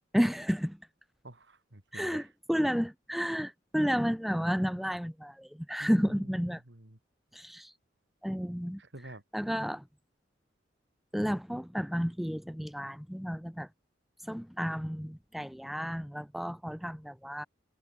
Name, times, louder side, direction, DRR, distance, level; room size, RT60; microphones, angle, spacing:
voice 1, 0.1-0.8 1.9-6.6 7.3-7.7 8.2-8.8 9.3-9.8 11.1-13.7 14.2-17.5, equal, ahead, 0.6 m, -31 dB
voice 2, 1.2-2.3 5.8-7.0 8.8-9.2, right 1 dB, 70° right, 3.0 m, -48 dB
head